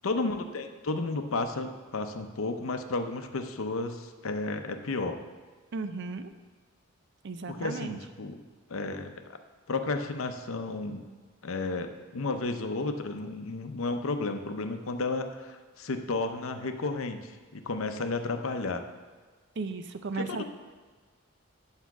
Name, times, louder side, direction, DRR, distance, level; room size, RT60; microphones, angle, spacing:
voice 1, 0.0-5.2 7.5-8.4 8.7-9.4 9.7-11.0 11.4-18.8 20.1-20.4, left 3 dB, 70° left, 7 dB, 0.7 m, -32 dB
voice 2, 5.7-6.3 7.2-8.0 19.6-20.4, right 3 dB, 55° right, 9 dB, 0.5 m, -35 dB
8.2 x 5.6 x 6.0 m, 1.4 s
head